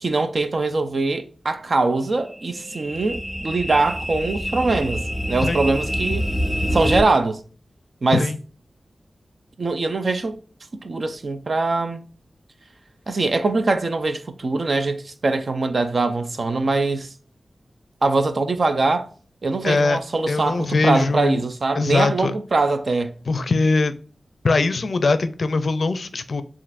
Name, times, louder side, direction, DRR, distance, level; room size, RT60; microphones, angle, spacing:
voice 1, 0.0-6.3 6.7-7.4 8.0-8.2 9.6-10.4 10.8-12.0 13.1-17.1 18.0-19.1 19.4-23.1, right 3 dB, 50° right, 0.5 m, -22 dB
sound 1, 1.9-7.0, equal, 5° right, 1.4 m, -26 dB
voice 2, 19.6-20.0 20.3-21.4 21.7-22.3 23.3-23.9 24.4-26.4, left 3 dB, 60° left, 0.4 m, -21 dB
7.2 x 2.5 x 2.5 m
wide cardioid pair, 120°, 0 cm